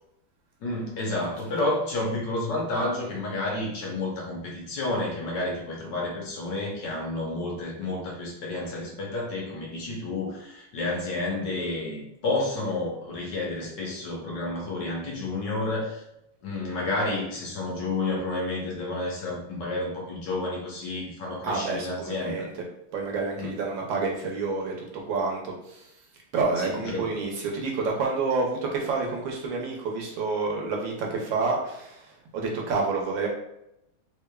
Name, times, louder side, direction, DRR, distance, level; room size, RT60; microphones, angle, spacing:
voice 1, 0.6-16.0 16.4-22.3 23.4-23.5 26.6-27.1, left 2 dB, 65° left, -3 dB, 1.4 m, -30 dB
voice 2, 21.4-22.5 22.9-25.9 26.3-32.1 32.3-33.3, right 4 dB, 75° right, 0 dB, 1.4 m, -28 dB
3.5 x 3.3 x 2.2 m, 0.81 s
omnidirectional pair, 2.2 m